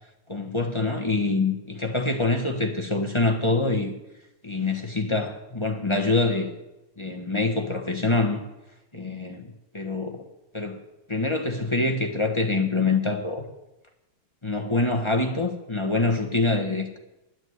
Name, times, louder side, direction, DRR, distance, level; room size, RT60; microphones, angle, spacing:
voice 1, 0.3-3.9 4.4-6.5 7.0-8.4 8.9-10.2 10.5-10.8 11.1-13.4 14.4-17.0, left 2 dB, 20° left, 3 dB, 1.0 m, -25 dB
10.5 x 9.8 x 9.5 m, 0.96 s
omnidirectional pair, 2.3 m